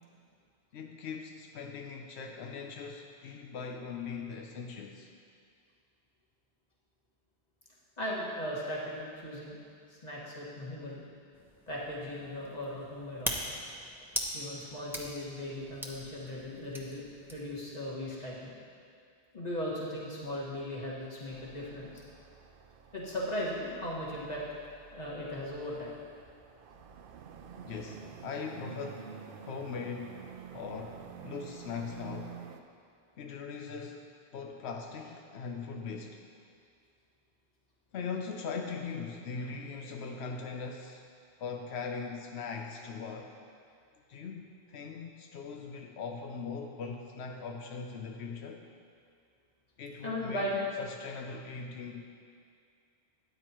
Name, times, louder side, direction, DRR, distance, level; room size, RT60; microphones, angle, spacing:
voice 1, 0.7-5.1 27.6-29.1 29.4-30.2 30.5-32.4 33.2-34.0 34.3-36.2 37.9-41.0 41.4-43.4 44.1-48.6 49.8-50.5 50.8-52.1, left 5 dB, 90° left, 3 dB, 0.9 m, -40 dB
voice 2, 8.0-9.6 9.9-11.0 11.7-13.5 14.3-17.0 17.3-18.5 19.3-22.0 22.9-24.4 24.9-25.9 50.0-50.6, left 1 dB, 40° left, -6 dB, 1.8 m, -37 dB
sound 1, 11.3-17.6, equal, ahead, 0.8 m, -41 dB
sound 2, 21.3-32.6, right 7 dB, 60° right, 0.7 m, -49 dB
13.0 x 9.4 x 3.0 m, 2.3 s
omnidirectional pair, 1.1 m